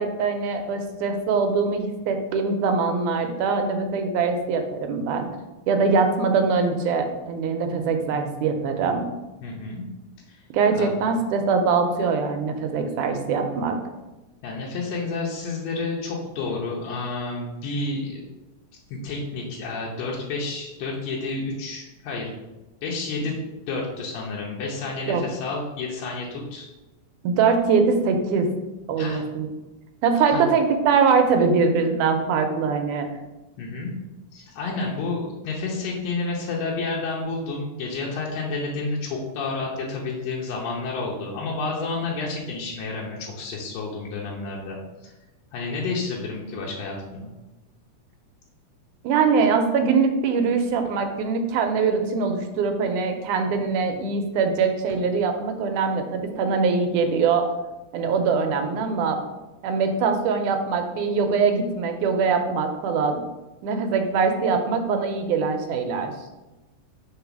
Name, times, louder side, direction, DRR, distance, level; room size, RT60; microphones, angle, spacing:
voice 1, 0.0-5.3 5.7-9.1 10.5-13.8 25.1-25.2 27.2-28.5 28.9-29.5 30.0-33.1 49.0-57.5 57.9-59.2 59.6-63.2 63.6-66.1, right 5 dB, 80° right, 5 dB, 2.0 m, -22 dB
voice 2, 9.4-9.9 10.3-10.4 10.8-10.9 14.4-18.2 18.9-22.3 22.8-23.4 23.7-26.7 29.0-29.2 30.3-30.4 33.6-33.9 34.3-45.1 45.5-47.3, left 3 dB, 90° left, -3 dB, 2.5 m, -30 dB
5.4 x 4.0 x 5.9 m, 1.1 s
omnidirectional pair, 3.8 m